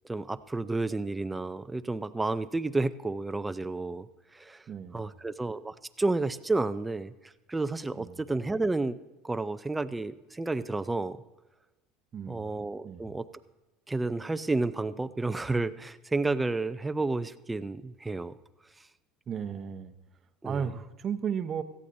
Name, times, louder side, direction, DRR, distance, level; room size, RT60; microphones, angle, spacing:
voice 1, 0.1-4.1 4.3-4.6 4.9-7.1 7.5-9.0 9.2-11.2 12.3-13.3 13.9-18.3 20.4-20.6, right 3 dB, 10° right, 12 dB, 0.5 m, -31 dB
voice 2, 4.7-5.0 8.0-8.2 12.1-12.5 12.8-13.1 19.3-19.9 20.4-21.6, right 7 dB, 35° right, 9 dB, 0.9 m, -34 dB
17.0 x 14.0 x 2.7 m, 1.0 s
supercardioid pair, 105°, 0 cm